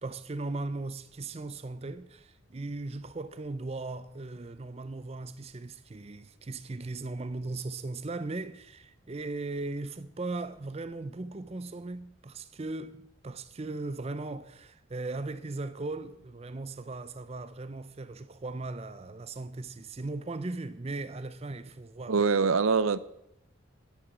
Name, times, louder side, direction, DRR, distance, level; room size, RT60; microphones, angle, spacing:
voice 1, 0.0-22.2, right 2 dB, 30° right, 0.5 m, -38 dB
voice 2, 22.1-23.0, right 5 dB, 80° right, 0.6 m, -24 dB
9.8 x 8.1 x 8.9 m
head